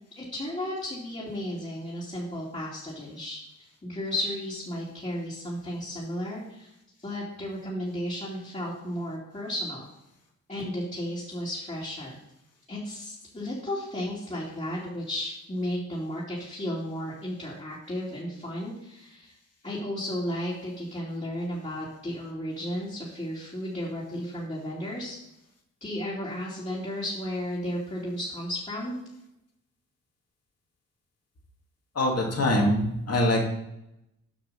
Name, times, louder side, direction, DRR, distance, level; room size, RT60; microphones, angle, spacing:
voice 1, 0.2-6.7 7.0-9.9 10.5-12.2 12.7-19.4 19.6-25.2 25.8-29.0, left 1 dB, 20° left, -8 dB, 2.7 m, -34 dB
voice 2, 31.9-33.5, left 1 dB, 45° left, -1 dB, 2.6 m, -24 dB
7.2 x 5.7 x 5.5 m, 0.83 s
supercardioid pair, 60°, 34 cm